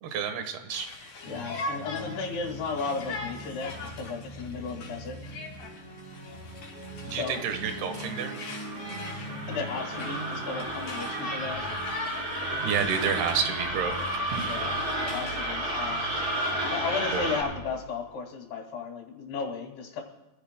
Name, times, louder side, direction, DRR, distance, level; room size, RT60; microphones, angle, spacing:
voice 1, 0.0-0.9 7.0-8.3 12.6-14.5 17.1-17.2, right 7 dB, 80° right, 7 dB, 3.3 m, -30 dB
Conversation, 0.7-13.5 13.9-16.5, left 3 dB, 55° left, 4.6 m, -41 dB
voice 2, 1.2-5.4 7.1-7.4 9.5-11.8 14.4-14.8 15.0-16.1 16.7-20.0, left 4 dB, 80° left, 0 dB, 3.8 m, -34 dB
sound 1, 1.2-17.7, right 1 dB, 50° right, 7.2 m, -42 dB
sound 2, 7.4-17.4, right 1 dB, 25° right, 4.5 m, -32 dB
25.5 x 16.0 x 2.2 m, 1.1 s
omnidirectional pair, 4.5 m